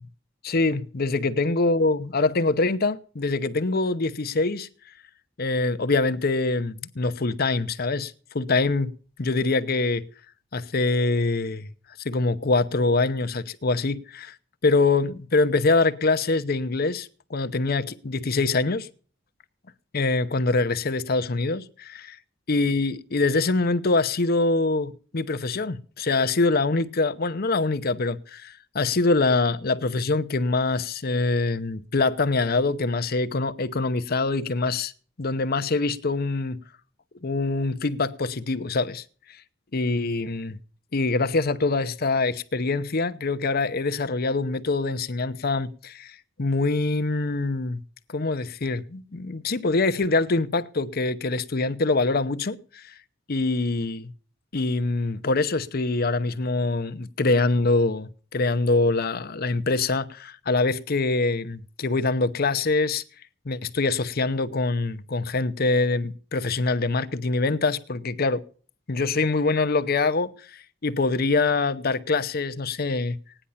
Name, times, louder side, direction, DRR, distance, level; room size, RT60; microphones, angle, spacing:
voice 1, 0.4-4.7 5.4-8.9 9.2-10.0 10.5-11.7 12.0-14.4 14.6-18.9 19.9-22.2 22.5-34.9 35.2-36.6 37.2-39.0 39.7-40.6 40.9-47.8 48.1-52.9 53.3-54.1 54.5-63.0 63.5-68.4 68.9-73.2, left 3 dB, 55° left, 0.8 m, -24 dB
17.0 x 10.0 x 5.6 m
head